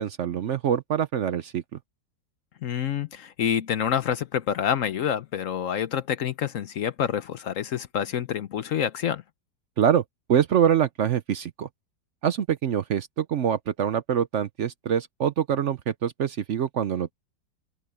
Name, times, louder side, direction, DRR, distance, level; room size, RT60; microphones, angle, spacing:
voice 1, 0.0-1.6 9.8-10.0 10.3-11.7 12.2-17.1, right 9 dB, 65° right, 0.7 m, -25 dB
voice 2, 2.6-9.2, left 9 dB, 60° left, 0.9 m, -27 dB
omnidirectional pair, 1.9 m